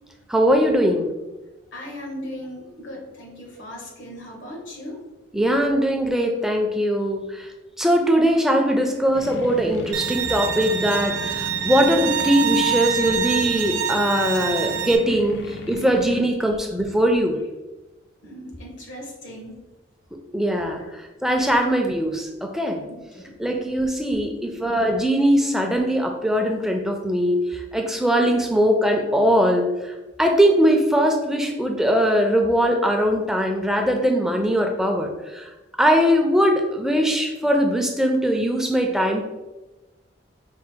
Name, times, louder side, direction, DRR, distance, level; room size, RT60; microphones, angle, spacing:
voice 1, 0.3-1.1 5.3-7.5 7.8-17.4 20.3-20.8 21.2-22.8 23.4-35.5 35.8-39.2, equal, ahead, 2 dB, 0.4 m, -21 dB
voice 2, 1.7-5.0 8.8-8.9 10.2-10.3 11.1-11.7 13.0-13.1 13.5-13.7 14.2-14.8 16.1-16.2 18.2-19.6 20.8-21.0 22.8-23.4, left 1 dB, 80° left, 0 dB, 1.2 m, -39 dB
sound 1, 9.1-16.2, left 2 dB, 65° left, 0.5 m, -37 dB
Bowed string instrument, 9.9-15.0, right 8 dB, 85° right, 0.5 m, -26 dB
5.0 x 2.0 x 4.3 m, 1.1 s
head